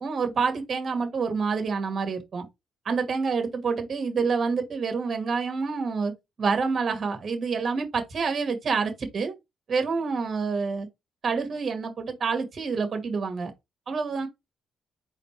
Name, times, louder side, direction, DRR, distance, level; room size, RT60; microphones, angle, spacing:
voice 1, 0.0-2.5 2.8-6.1 6.4-9.3 9.7-10.9 11.2-13.5 13.9-14.3, right 5 dB, 45° right, 1.8 m, -27 dB
4.2 x 3.7 x 3.2 m
cardioid pair, 90°, 0 cm